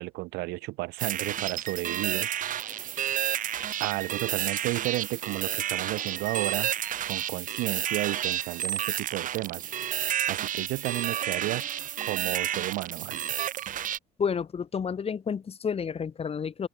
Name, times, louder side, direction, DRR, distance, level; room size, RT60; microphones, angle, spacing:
voice 1, 0.0-2.9 3.8-6.7 7.1-9.7 10.3-11.6 12.1-13.2, right 22 dB, 75° right, 7.7 m, -33 dB
sound 1, 1.0-14.0, right 11 dB, 55° right, 2.1 m, -31 dB
voice 2, 14.2-16.7, left 6 dB, 35° left, 2.9 m, -30 dB
open air
supercardioid pair, 80°, 17 cm